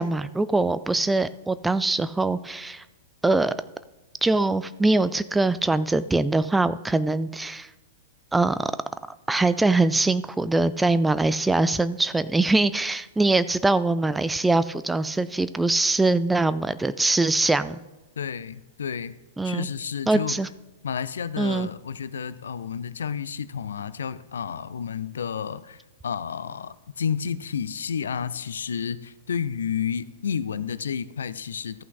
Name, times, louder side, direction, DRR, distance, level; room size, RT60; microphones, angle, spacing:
voice 1, 0.0-2.8 3.2-3.5 4.2-7.7 8.3-8.7 9.3-17.8 19.4-19.7 20.1-20.5 21.4-21.7, right 2 dB, 5° right, 14 dB, 0.3 m, -23 dB
voice 2, 18.2-19.1 19.4-20.3 20.8-31.8, left 7 dB, 65° left, 16 dB, 0.4 m, -31 dB
14.0 x 5.8 x 3.9 m, 1.1 s
figure-of-eight pair, 100°, 0 cm